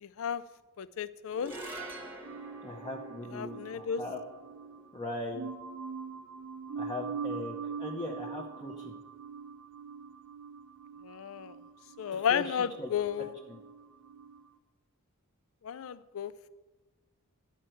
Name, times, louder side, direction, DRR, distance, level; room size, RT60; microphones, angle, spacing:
voice 1, 0.0-0.4 0.8-1.6 3.3-4.0 11.0-11.5 12.0-13.3 15.6-16.3, left 8 dB, 65° left, 16 dB, 0.4 m, -33 dB
sound 1, 1.3-7.8, right 1 dB, 10° right, 1.2 m, -48 dB
sound 2, 2.2-14.5, right 5 dB, 60° right, 0.6 m, -43 dB
voice 2, 2.6-4.2 4.9-5.5 6.8-9.0 12.1-12.9 13.5-13.6, left 1 dB, 20° left, -2 dB, 0.8 m, -39 dB
11.5 x 4.5 x 7.6 m, 1.2 s
head